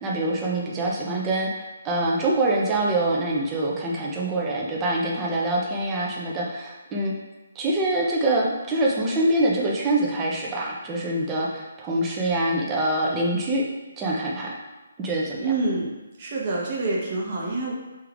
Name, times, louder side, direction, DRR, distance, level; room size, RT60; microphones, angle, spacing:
voice 1, 0.0-7.1 7.5-13.6 14.0-14.6 15.0-15.5, right 1 dB, 15° right, -3 dB, 0.6 m, -25 dB
voice 2, 15.4-15.9 16.2-17.7, right 3 dB, 30° right, -4 dB, 1.0 m, -26 dB
3.4 x 3.3 x 3.4 m, 1.1 s
figure-of-eight pair, 140°, 0 cm